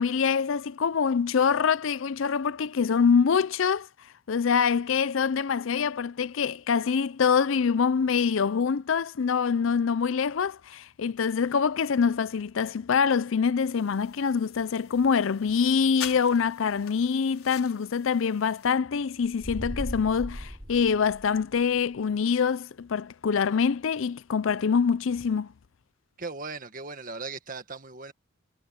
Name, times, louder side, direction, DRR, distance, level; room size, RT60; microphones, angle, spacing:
voice 1, 0.0-3.9 4.3-25.5, left 6 dB, 65° left, 0.5 m, -25 dB
sound 1, 13.6-18.7, left 10 dB, 90° left, 4.7 m, -44 dB
sound 2, 19.2-21.7, equal, 20° right, 6.3 m, -37 dB
voice 2, 26.2-28.1, right 3 dB, 40° right, 1.8 m, -38 dB
head